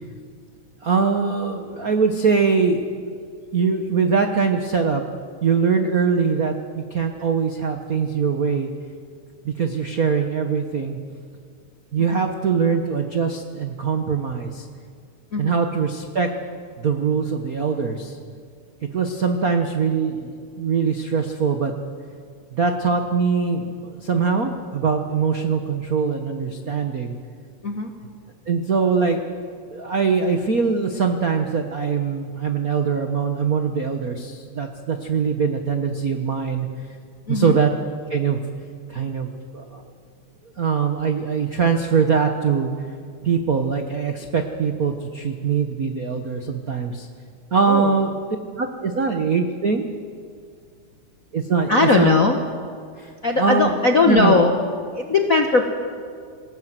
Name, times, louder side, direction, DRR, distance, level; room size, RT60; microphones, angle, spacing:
voice 1, 0.8-3.2 3.5-5.0 5.4-8.7 9.4-11.0 11.9-14.7 15.4-16.3 16.8-18.2 18.9-21.7 22.5-27.2 28.5-29.2 29.7-36.7 37.3-37.7 38.1-38.4 38.9-39.8 40.6-42.9 43.2-47.1 47.5-48.2 48.6-49.8 51.3-52.1 53.0-53.7 54.1-54.4, right 5 dB, 70° right, 5 dB, 0.8 m, -22 dB
voice 2, 37.3-37.6 47.6-47.9 51.7-52.4 53.2-54.5 55.0-55.7, left 3 dB, 55° left, 3 dB, 0.9 m, -18 dB
27.0 x 17.0 x 7.6 m, 2.1 s
omnidirectional pair, 3.4 m